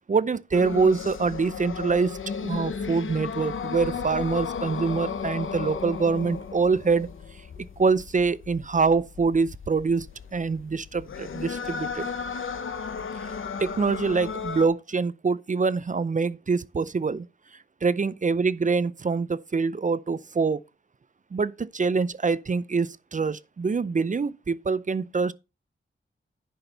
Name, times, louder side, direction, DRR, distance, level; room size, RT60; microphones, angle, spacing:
voice 1, 0.1-7.1 7.8-10.1 10.3-12.1 13.6-17.3 17.8-20.6 21.3-25.3, right 4 dB, 40° right, 0.5 m, -25 dB
sound 1, 0.5-14.7, left 6 dB, 75° left, 1.0 m, -34 dB
10.0 x 6.1 x 4.0 m
wide cardioid pair, 75°, 21 cm